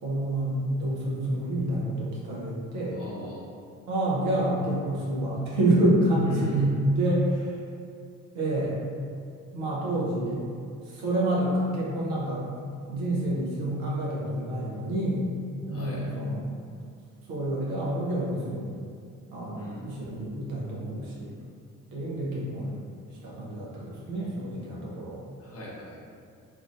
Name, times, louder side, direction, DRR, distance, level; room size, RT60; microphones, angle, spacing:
voice 1, 0.0-3.0 3.9-7.6 8.3-8.8 9.5-10.4 10.8-12.4 12.9-15.3 15.6-16.4 17.3-18.7 19.3-21.3 21.9-22.7 23.2-25.2, right 1 dB, 70° right, -5 dB, 0.7 m, -28 dB
voice 2, 2.9-3.5 6.3-6.7 15.7-16.1 19.5-19.8 25.4-26.0, left 1 dB, 35° left, -6 dB, 0.9 m, -41 dB
2.7 x 2.4 x 2.3 m, 2.3 s
figure-of-eight pair, 45°, 43 cm